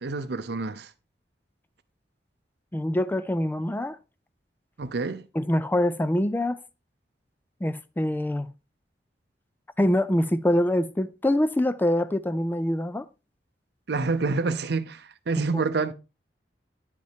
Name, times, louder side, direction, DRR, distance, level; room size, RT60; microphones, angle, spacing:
voice 1, 0.0-0.9 4.8-5.3 13.9-15.9, right 3 dB, 65° right, 0.6 m, -27 dB
voice 2, 2.7-4.0 5.3-6.6 7.6-8.5 9.8-13.1 15.5-15.6, left 1 dB, 10° left, 0.4 m, -24 dB
9.1 x 5.3 x 3.4 m
head